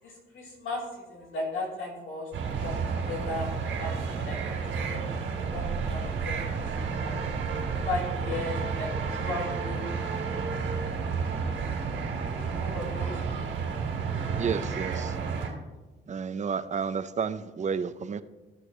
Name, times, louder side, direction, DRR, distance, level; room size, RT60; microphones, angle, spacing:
voice 1, 0.0-2.3 2.6-2.8 3.1-3.5 3.8-6.7 7.0-7.1 7.7-9.8 12.4-13.5, left 2 dB, 85° left, -4 dB, 3.7 m, -36 dB
sound 1, 2.3-15.5, right 5 dB, 80° right, 2.8 m, -31 dB
voice 2, 14.4-15.1 16.1-18.2, right 6 dB, 35° right, 12 dB, 0.6 m, -31 dB
15.5 x 6.3 x 3.2 m, 1.2 s
cardioid pair, 90°, 20 cm